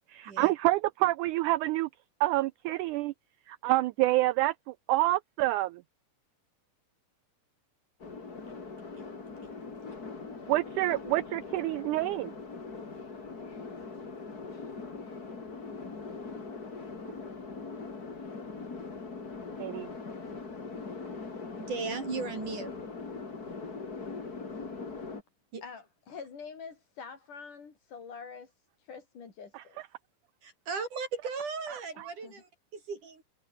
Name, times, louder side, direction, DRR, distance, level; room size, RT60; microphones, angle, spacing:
voice 1, 0.1-1.9 2.2-3.1 3.5-5.8 10.5-12.3 19.6-19.9 29.5-29.6 32.0-32.1, right 17 dB, 85° right, 1.7 m, -27 dB
sound 1, 8.0-25.2, left 4 dB, 25° left, 3.1 m, -41 dB
voice 2, 21.6-22.7 25.5-25.6 30.4-33.2, right 4 dB, 60° right, 7.1 m, -36 dB
voice 3, 25.6-28.5 28.8-29.8 32.0-32.3, left 5 dB, 60° left, 5.4 m, -46 dB
omnidirectional pair, 4.1 m